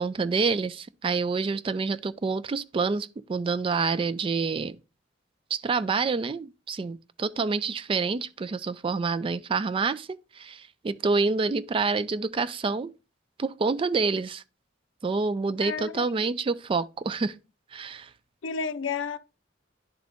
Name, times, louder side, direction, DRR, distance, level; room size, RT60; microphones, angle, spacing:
voice 1, 0.0-4.8 5.5-12.9 13.4-14.4 15.0-17.4 17.7-18.1, right 4 dB, 30° right, 0.3 m, -27 dB
voice 2, 15.6-16.0 18.4-19.2, left 5 dB, 90° left, 0.5 m, -31 dB
10.0 x 3.9 x 3.4 m
head